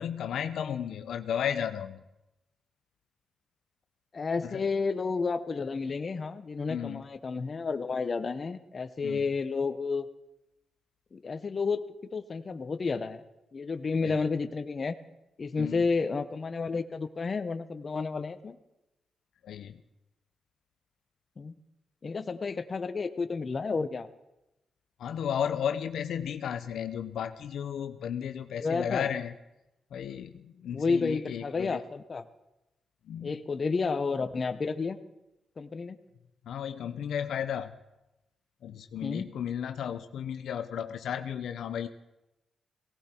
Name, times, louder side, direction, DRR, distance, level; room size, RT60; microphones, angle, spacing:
voice 1, 0.0-2.0 4.4-4.7 6.7-7.1 9.0-9.3 14.0-14.2 15.6-15.9 19.4-19.8 25.0-29.3 29.9-31.8 33.0-33.4 36.4-37.8 38.6-41.9, left 8 dB, 85° left, 9 dB, 0.7 m, -34 dB
voice 2, 4.1-10.1 11.1-11.8 12.1-13.2 13.5-15.0 15.4-18.6 21.4-21.5 22.0-24.1 28.6-29.1 30.7-32.2 33.2-35.0 35.6-36.0 39.0-39.3, left 4 dB, 40° left, 10 dB, 0.9 m, -31 dB
18.5 x 17.0 x 4.5 m, 0.94 s
cardioid pair, 90°, 0 cm